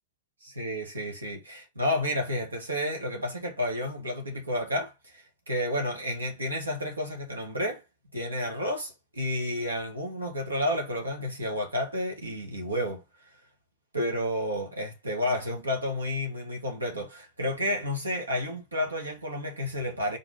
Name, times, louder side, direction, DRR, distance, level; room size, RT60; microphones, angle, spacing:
voice 1, 0.4-7.8 8.1-13.0 13.9-20.2, left 1 dB, 80° right, 1.9 m, -31 dB
4.8 x 3.7 x 5.2 m
figure-of-eight pair, 90°, 0 cm